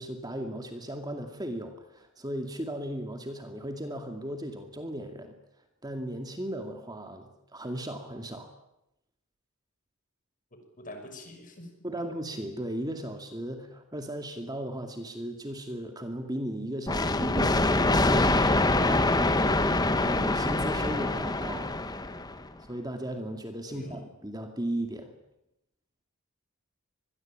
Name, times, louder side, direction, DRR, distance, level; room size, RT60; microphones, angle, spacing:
voice 1, 0.0-5.4 5.8-8.5 11.8-21.7 22.6-25.1, right 1 dB, 20° right, 5 dB, 2.4 m, -36 dB
voice 2, 10.5-12.0 23.7-24.0, left 1 dB, 40° left, 6 dB, 6.3 m, -46 dB
sound 1, 16.9-22.5, left 2 dB, 20° left, 1.3 m, -25 dB
25.5 x 21.5 x 8.9 m, 0.86 s
head